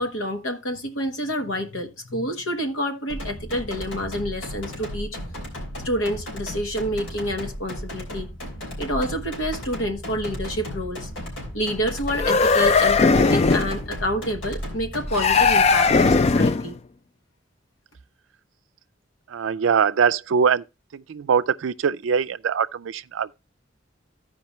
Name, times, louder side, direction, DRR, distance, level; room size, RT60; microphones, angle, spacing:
voice 1, 0.0-5.2 5.8-8.3 8.8-11.1 11.5-16.8, equal, 90° left, 1.2 m, -28 dB
sound 1, 3.1-16.2, equal, 70° left, 3.3 m, -34 dB
sound 2, 12.1-13.8 15.1-16.7, left 4 dB, 35° left, 0.4 m, -18 dB
voice 2, 19.3-20.6 20.9-23.3, right 6 dB, 85° right, 0.4 m, -22 dB
14.5 x 5.0 x 3.0 m
head